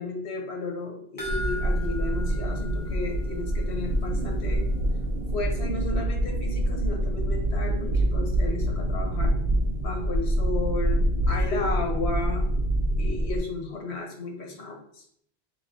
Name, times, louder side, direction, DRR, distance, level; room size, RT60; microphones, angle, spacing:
voice 1, 0.0-4.6 5.3-9.4 9.8-12.5 13.0-15.0, left 3 dB, 85° left, 2 dB, 1.2 m, -33 dB
sound 1, 1.2-3.7 4.0-4.1 4.5-4.6, left 1 dB, 20° left, 0.9 m, -39 dB
sound 2, 1.3-13.4, right 1 dB, 60° right, 0.8 m, -26 dB
3.2 x 3.1 x 4.0 m, 0.67 s
omnidirectional pair, 1.1 m